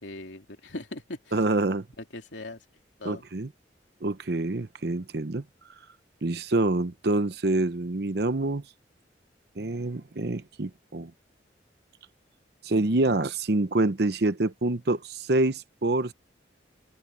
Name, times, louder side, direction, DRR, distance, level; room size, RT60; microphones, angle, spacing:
voice 1, 0.0-1.3 2.1-2.6 3.0-3.2, left 2 dB, 85° left, 2.8 m, -39 dB
voice 2, 1.3-1.8 3.0-3.5 4.0-5.4 6.2-8.6 9.6-11.1 12.6-16.1, right 2 dB, 60° right, 0.8 m, -26 dB
head